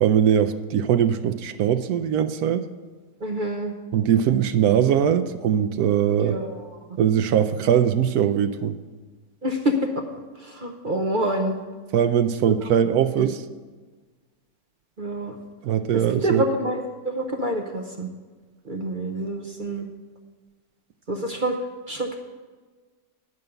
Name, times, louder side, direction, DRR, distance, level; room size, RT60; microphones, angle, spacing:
voice 1, 0.0-2.7 3.9-6.4 7.0-8.8 11.9-13.4 15.6-16.4, right 9 dB, 70° right, 10 dB, 0.9 m, -21 dB
voice 2, 3.2-3.7 6.2-6.7 9.4-10.0 10.4-11.6 12.4-12.5 13.2-13.3 15.0-15.4 15.9-18.1 18.6-19.9 21.1-21.6 21.9-22.2, right 1 dB, 50° right, 2 dB, 0.6 m, -27 dB
11.0 x 5.4 x 7.8 m, 1.4 s
omnidirectional pair, 1.9 m